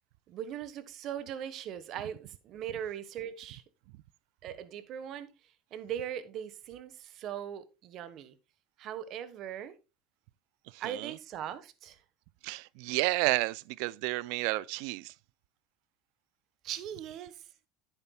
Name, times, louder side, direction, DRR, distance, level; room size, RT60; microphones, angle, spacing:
voice 1, 0.3-3.6 4.4-8.3 8.8-9.8 10.8-12.0 16.6-17.5, right 9 dB, 55° right, 1.2 m, -40 dB
voice 2, 10.7-11.1 12.4-15.1, right 20 dB, 75° right, 0.4 m, -31 dB
10.5 x 8.7 x 2.3 m
supercardioid pair, 110°, 0 cm